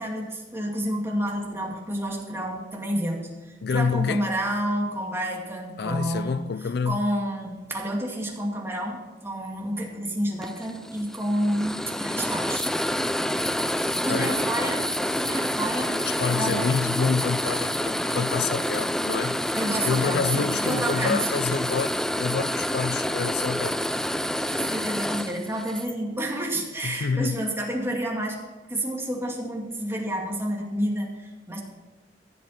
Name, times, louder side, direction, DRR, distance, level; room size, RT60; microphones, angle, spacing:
voice 1, 0.0-6.4 6.9-12.7 14.0-16.0 16.4-16.7 19.5-21.3 24.5-31.6, right 1 dB, 15° right, 2.4 m, -29 dB
voice 2, 3.6-4.3 5.8-7.0 13.9-14.4 16.1-19.4 19.8-23.8 26.8-27.5, left 5 dB, 65° left, 0.4 m, -28 dB
sound 1, 10.4-25.9, equal, 5° left, 0.3 m, -28 dB
15.5 x 7.4 x 5.9 m
head